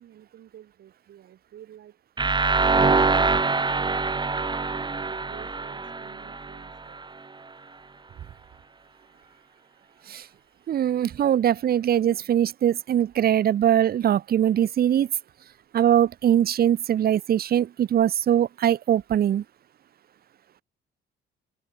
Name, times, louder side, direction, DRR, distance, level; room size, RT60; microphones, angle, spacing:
voice 1, 0.0-2.0 4.0-7.0, right 11 dB, 70° right, 5.7 m, -50 dB
sound 1, 2.2-7.0, right 4 dB, 20° right, 1.5 m, -24 dB
voice 2, 10.7-15.1 15.7-19.4, right 10 dB, 50° right, 0.6 m, -22 dB
open air
cardioid pair, 90°, 20 cm